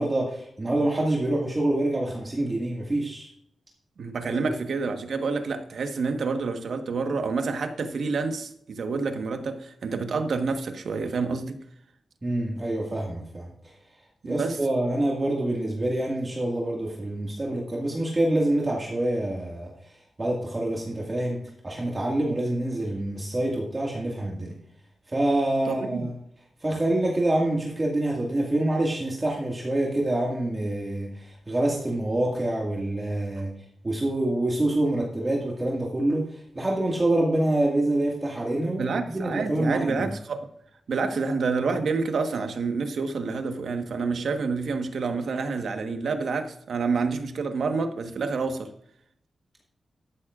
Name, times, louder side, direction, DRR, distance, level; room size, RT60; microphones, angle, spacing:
voice 1, 0.0-3.3 4.3-4.4 12.2-13.5 14.2-19.7 20.2-24.6 25.1-26.1 26.6-33.6 33.8-40.1, right 1 dB, 25° right, -2 dB, 2.0 m, -26 dB
voice 2, 4.0-11.6 14.2-14.6 25.7-26.1 38.8-40.5 40.9-48.7, right 4 dB, 75° right, 6 dB, 1.3 m, -28 dB
13.5 x 11.5 x 2.5 m, 0.72 s
wide cardioid pair, 90°, 0 cm